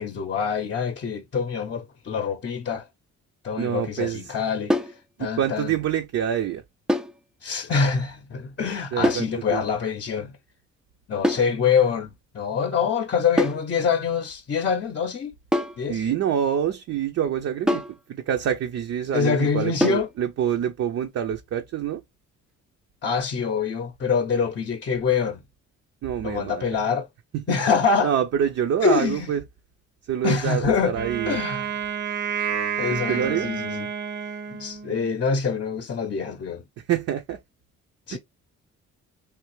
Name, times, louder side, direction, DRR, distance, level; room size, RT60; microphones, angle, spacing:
voice 1, 0.0-2.9 3.4-4.9 5.2-5.7 7.4-10.4 11.1-15.3 15.8-16.0 19.1-20.1 23.0-25.4 26.2-27.1 27.5-28.1 28.8-29.3 30.2-30.9 31.3-31.7 32.8-33.9 34.5-36.7 38.1-38.2, left 6 dB, 40° left, 0.7 m, -25 dB
voice 2, 3.6-4.3 5.2-6.6 8.9-9.6 15.9-17.8 18.1-22.0 26.0-26.6 27.3-27.4 28.0-29.4 30.1-31.4 32.9-33.5 36.9-37.4 38.1-38.2, right 9 dB, 55° right, 0.5 m, -26 dB
sound 1, 4.7-5.0 6.9-7.2 9.0-9.3 11.2-11.5 13.4-13.7 15.5-15.8 17.7-18.0 19.8-20.1, left 1 dB, 5° right, 0.3 m, -24 dB
Wind instrument woodwind instrument, 30.9-35.1, right 7 dB, 80° right, 0.9 m, -30 dB
3.3 x 2.8 x 3.1 m
cardioid pair, 90°, 30 cm